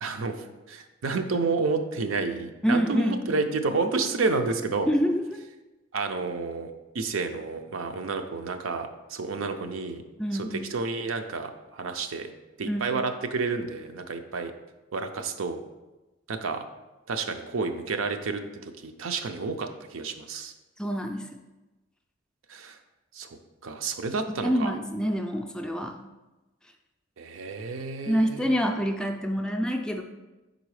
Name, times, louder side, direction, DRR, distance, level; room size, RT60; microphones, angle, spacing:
voice 1, 0.0-4.9 5.9-10.0 10.3-10.5 10.7-12.3 12.6-14.5 14.9-15.6 16.3-16.6 17.1-20.5 22.5-22.8 23.1-23.3 23.6-24.7 27.2-28.5, right 4 dB, 80° right, 6 dB, 0.5 m, -30 dB
voice 2, 2.6-3.3 4.9-5.4 10.2-10.5 12.6-12.8 20.8-21.3 24.4-26.0 28.1-30.0, equal, 5° left, 4 dB, 0.3 m, -26 dB
5.4 x 3.9 x 4.8 m, 1.1 s
head